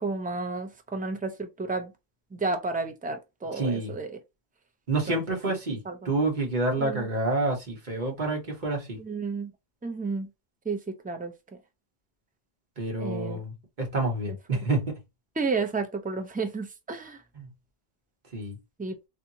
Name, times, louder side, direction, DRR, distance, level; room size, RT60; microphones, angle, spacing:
voice 1, 0.0-1.9 2.3-4.1 5.1-5.2 5.5-5.6 5.9-6.0 6.8-7.1 9.0-9.5 9.8-10.3 10.7-11.3 13.0-13.4 15.4-17.2 18.8-19.0, right 3 dB, 10° right, 0.4 m, -31 dB
voice 2, 3.5-3.9 4.9-5.8 6.0-9.0 12.8-15.0 17.3-17.5 18.3-18.6, right 2 dB, 45° right, 1.4 m, -28 dB
3.4 x 2.8 x 2.7 m
omnidirectional pair, 1.1 m